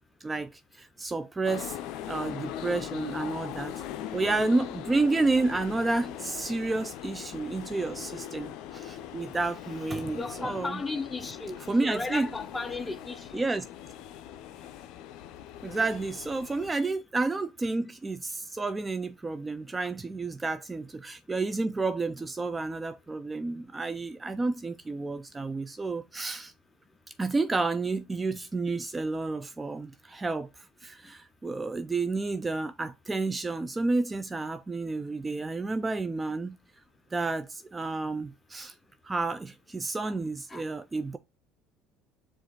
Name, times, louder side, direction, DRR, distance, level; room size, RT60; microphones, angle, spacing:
voice 1, 0.2-1.8 2.1-3.8 4.1-10.8 11.7-12.3 13.3-13.6 15.6-26.5 27.2-36.6 37.1-38.7 39.0-41.2, right 3 dB, 20° right, 0.3 m, -30 dB
sound 1, 1.4-16.7, left 11 dB, 70° left, 0.5 m, -41 dB
voice 2, 10.2-13.4 16.5-16.9 19.8-19.9 40.0-40.1 40.5-40.6, left 3 dB, 20° left, 0.6 m, -36 dB
4.8 x 2.5 x 4.4 m
supercardioid pair, 100°, 0 cm